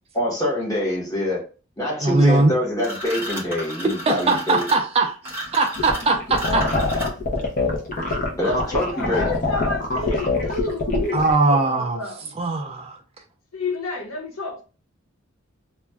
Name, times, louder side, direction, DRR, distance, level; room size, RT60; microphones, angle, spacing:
voice 1, 0.1-1.4 1.8-4.6 8.4-9.2, left 1 dB, 15° left, 1.0 m, -25 dB
voice 2, 2.0-2.5 4.1-6.7 11.1-12.0 12.4-13.0, right 3 dB, 30° right, 0.3 m, -20 dB
sound 1, 2.8-7.4, equal, 10° right, 0.8 m, -33 dB
sound 2, 5.8-11.3, left 2 dB, 40° left, 0.6 m, -24 dB
voice 3, 8.4-12.4 13.5-14.6, left 3 dB, 85° left, 0.9 m, -31 dB
2.4 x 2.2 x 3.3 m
head